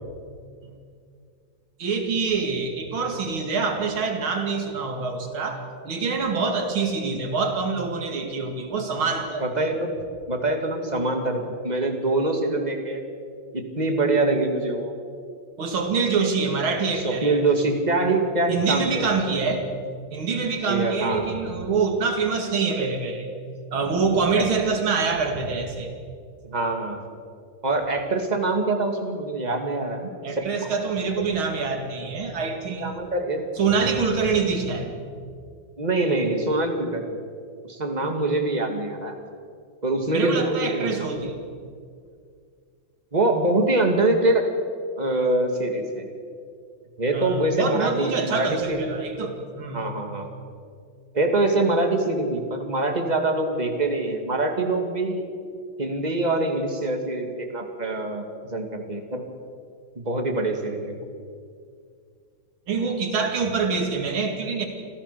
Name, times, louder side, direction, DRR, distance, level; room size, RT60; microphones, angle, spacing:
voice 1, 1.8-9.5 15.6-17.4 18.5-19.7 20.1-23.3 23.7-25.9 30.2-33.0 33.6-34.9 40.1-41.4 47.1-49.9 62.7-64.7, right 4 dB, 85° right, 4 dB, 3.1 m, -25 dB
voice 2, 9.4-9.8 10.3-13.0 13.5-14.9 17.0-19.4 20.6-21.3 24.4-24.5 26.4-27.0 27.6-30.7 32.8-33.4 35.8-37.2 37.6-39.1 39.8-40.9 43.1-44.4 45.0-46.1 47.0-48.8 49.7-50.3 51.1-55.2 55.8-58.2 58.5-59.2 60.0-61.0, right 2 dB, 20° right, 4 dB, 2.3 m, -24 dB
26.5 x 15.5 x 6.9 m, 2.2 s
omnidirectional pair, 2.2 m